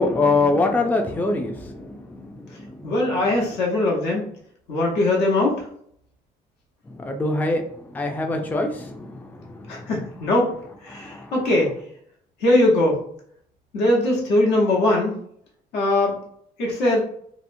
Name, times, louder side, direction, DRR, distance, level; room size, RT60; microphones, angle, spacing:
voice 1, 0.0-2.8 7.0-7.6 7.9-9.7 10.9-11.3, left 3 dB, 10° left, 4 dB, 0.3 m, -24 dB
voice 2, 2.8-4.3 4.7-5.7 9.7-10.5 10.8-11.7 12.4-13.0 13.7-15.2 15.7-16.2 16.6-17.0, left 1 dB, 85° left, -2 dB, 1.0 m, -20 dB
2.8 x 2.0 x 2.5 m, 0.65 s
cardioid pair, 110°, 17 cm